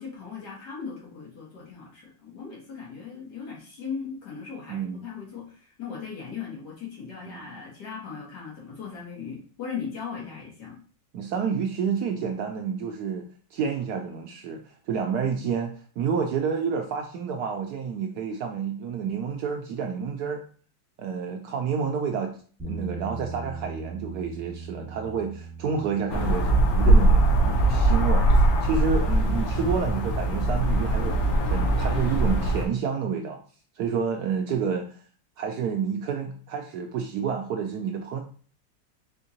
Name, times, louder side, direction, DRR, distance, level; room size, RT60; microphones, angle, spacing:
voice 1, 0.0-10.8, left 6 dB, 65° left, -3 dB, 2.1 m, -38 dB
voice 2, 4.7-5.1 7.2-7.5 11.1-13.2 13.5-20.4 21.0-22.3 22.6-28.3 28.6-33.4 33.8-35.0 35.4-38.2, right 6 dB, 70° right, 3 dB, 0.9 m, -29 dB
Bass guitar, 22.6-28.8, right 3 dB, 10° right, 0.9 m, -40 dB
sound 1, 26.1-32.7, right 2 dB, 85° left, 1.6 m, -21 dB
4.4 x 3.6 x 2.7 m, 0.42 s
omnidirectional pair, 2.0 m